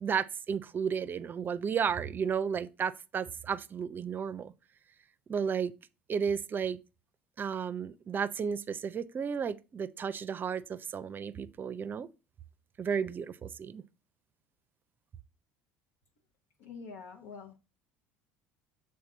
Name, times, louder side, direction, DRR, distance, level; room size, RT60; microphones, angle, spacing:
voice 1, 0.0-4.5 5.3-5.7 6.1-6.8 7.4-12.1 12.8-13.8, right 7 dB, 35° right, 0.5 m, -33 dB
voice 2, 16.6-17.6, left 5 dB, 70° left, 1.0 m, -46 dB
7.2 x 3.9 x 3.8 m
hypercardioid pair, 70°, 6 cm